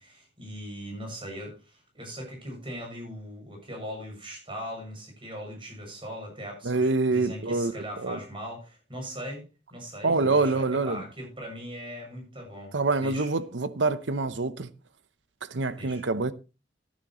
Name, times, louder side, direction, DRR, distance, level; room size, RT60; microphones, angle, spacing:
voice 1, 0.0-13.3 15.8-16.0, equal, 30° right, 7.2 m, -40 dB
voice 2, 6.6-8.2 10.0-11.0 12.7-14.7 15.4-16.3, right 3 dB, 90° right, 0.8 m, -26 dB
14.0 x 11.5 x 3.1 m
head